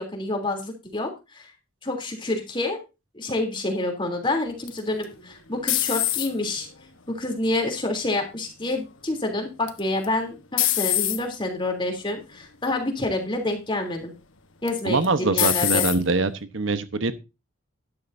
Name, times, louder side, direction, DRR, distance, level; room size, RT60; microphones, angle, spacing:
voice 1, 0.0-1.5 1.8-2.8 3.1-6.7 7.1-14.1 14.6-15.9, left 2 dB, 25° left, 3.2 m, -28 dB
sound 1, 4.7-6.6 7.1-7.7 9.7-10.1 10.6-11.2 12.0-12.2 12.6-12.7 14.7-15.1 15.4-16.0, left 14 dB, 70° left, 1.2 m, -24 dB
voice 2, 14.8-17.2, right 3 dB, 65° right, 1.0 m, -23 dB
13.0 x 11.5 x 2.7 m
head